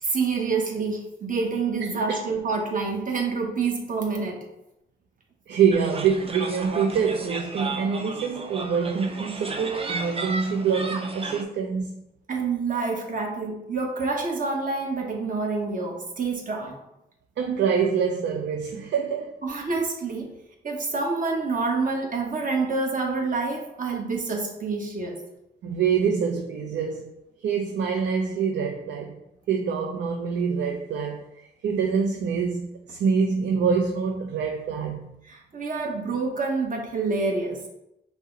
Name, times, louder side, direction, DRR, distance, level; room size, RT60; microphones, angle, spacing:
voice 1, 0.0-4.4 12.3-16.7 19.4-20.3 20.6-25.2 35.2-37.6, right 4 dB, 50° right, 1.0 m, -27 dB
voice 2, 5.5-12.0 17.4-19.4 25.6-27.1 27.4-29.2 29.5-35.1, right 6 dB, 85° right, 0.4 m, -25 dB
sound 1, 5.7-11.4, right 3 dB, 30° right, 0.5 m, -34 dB
5.3 x 2.0 x 3.8 m
cardioid pair, 75°, 18 cm